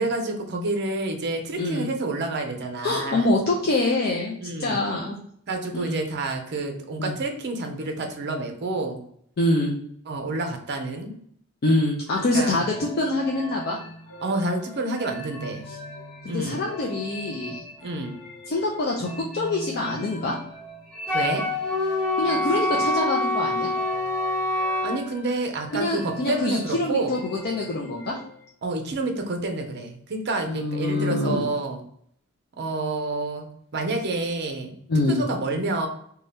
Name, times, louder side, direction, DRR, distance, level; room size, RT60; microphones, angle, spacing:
voice 1, 0.0-3.3 4.4-4.9 5.5-9.0 10.1-11.1 12.3-12.6 14.2-15.6 16.3-16.6 17.8-18.2 21.1-21.4 24.8-27.1 28.6-31.8 32.6-34.7 35.1-35.9, right 2 dB, 50° right, 4 dB, 0.5 m, -28 dB
voice 2, 1.6-1.9 2.8-5.2 5.7-6.0 7.0-7.2 9.4-9.7 11.6-13.8 15.7-15.8 16.2-17.6 18.5-20.3 22.2-23.7 25.7-28.2 30.5-31.5 34.9-35.2, left 2 dB, 45° left, -2 dB, 0.4 m, -25 dB
sound 1, 12.1-28.5, equal, 80° left, 0.9 m, -41 dB
Wind instrument woodwind instrument, 21.1-25.0, left 1 dB, 5° left, 1.2 m, -25 dB
2.7 x 2.2 x 3.3 m, 0.65 s
head